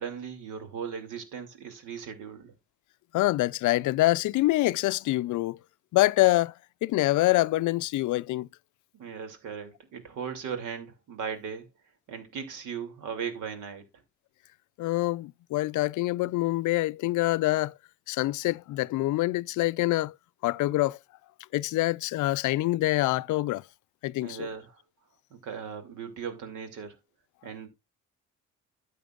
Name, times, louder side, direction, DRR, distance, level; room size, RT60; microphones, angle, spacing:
voice 1, 0.0-2.5 8.9-11.6 12.1-13.8 24.2-24.8 25.3-27.0 27.4-27.7, right 7 dB, 85° right, 2.7 m, -37 dB
voice 2, 3.1-5.6 5.9-6.5 6.8-8.5 14.8-17.7 18.1-20.1 20.4-21.0 21.5-23.6 24.0-24.5, left 18 dB, 75° left, 0.4 m, -25 dB
12.0 x 8.3 x 2.4 m
cardioid pair, 90°, 30 cm